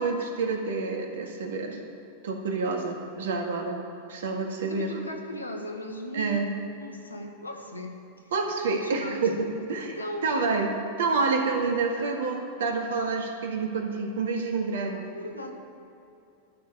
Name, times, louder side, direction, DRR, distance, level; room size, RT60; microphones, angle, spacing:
voice 1, 0.0-1.8 2.2-3.8 4.1-4.9 6.1-6.5 8.3-10.0 10.2-10.7 11.0-15.0, right 4 dB, 60° right, 3 dB, 1.8 m, -28 dB
voice 2, 4.6-6.4 6.8-8.3 8.7-9.2 10.0-10.3 15.1-15.5, left 1 dB, 80° left, 3 dB, 1.5 m, -38 dB
12.0 x 6.7 x 9.5 m, 2.7 s
figure-of-eight pair, 90°, 0 cm